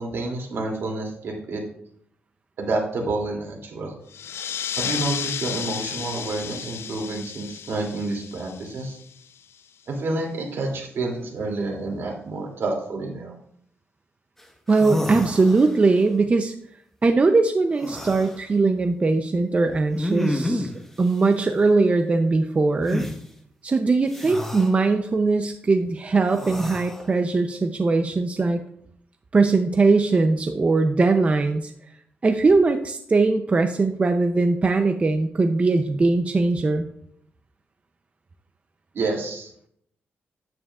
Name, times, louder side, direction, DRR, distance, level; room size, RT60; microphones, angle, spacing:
voice 1, 0.0-1.6 2.6-3.9 4.8-9.0 9.9-13.4 38.9-39.5, right 2 dB, 70° right, 0 dB, 2.7 m, -29 dB
sound 1, 4.1-9.3, left 9 dB, 80° left, 0.4 m, -33 dB
sound 2, 14.4-14.5 14.7-15.9 17.8-18.4 19.9-20.8 22.9-23.2 24.1-24.7 26.3-27.1, left 1 dB, 5° left, 1.2 m, -29 dB
voice 2, 14.7-16.5 17.0-20.7 21.0-23.1 23.6-28.6 29.3-31.7 32.2-36.9, right 3 dB, 30° right, 6 dB, 0.6 m, -20 dB
10.0 x 8.9 x 2.4 m, 0.67 s
cardioid pair, 110°, 4 cm